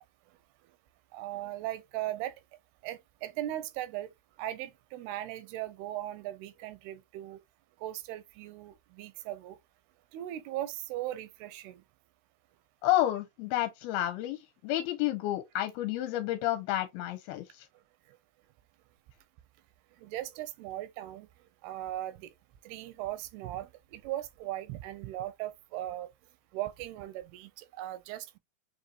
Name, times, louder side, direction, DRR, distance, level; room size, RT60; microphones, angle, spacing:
voice 1, 1.1-2.3 2.8-4.1 4.4-7.4 7.8-9.6 10.1-11.8 20.0-21.3 21.6-22.3 22.6-26.1 26.5-28.4, right 14 dB, 90° right, 2.6 m, -38 dB
voice 2, 12.8-14.4 14.6-17.4, left 14 dB, 85° left, 2.5 m, -30 dB
6.4 x 2.6 x 2.6 m
omnidirectional pair, 4.5 m